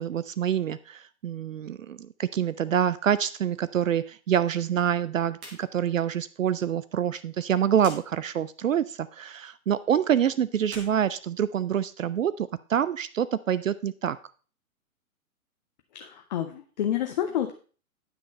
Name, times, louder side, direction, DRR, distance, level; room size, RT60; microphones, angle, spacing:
voice 1, 0.0-14.2, right 9 dB, 65° right, 16 dB, 0.5 m, -26 dB
sound 1, 5.3-5.6 5.9-6.0 7.8-8.0 10.6-11.9, right 2 dB, 5° right, 0.4 m, -45 dB
voice 2, 15.9-17.5, left 10 dB, 30° left, 6 dB, 0.6 m, -29 dB
9.7 x 6.1 x 4.1 m, 0.39 s
figure-of-eight pair, 115°, 42 cm